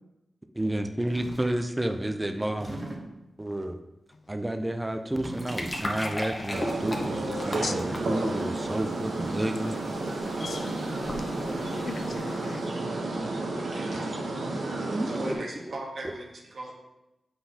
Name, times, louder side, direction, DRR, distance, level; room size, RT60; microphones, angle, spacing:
voice 1, 0.5-2.8 3.4-3.8 4.3-9.8 11.4-13.6 13.9-14.0 14.9-15.3, right 1 dB, 15° right, 0.5 m, -31 dB
sound 1, 1.1-1.6 2.4-3.3 4.9-6.1, right 2 dB, 40° right, 0.9 m, -40 dB
sound 2, 5.1-12.7, left 1 dB, 30° left, 1.1 m, -39 dB
sound 3, 6.5-15.3, right 2 dB, 85° right, 1.1 m, -31 dB
voice 2, 7.6-8.0 10.4-12.6, left 3 dB, 60° left, 0.5 m, -38 dB
voice 3, 15.2-16.7, right 2 dB, 70° right, 1.3 m, -37 dB
7.8 x 5.5 x 2.9 m
cardioid pair, 65°, 0 cm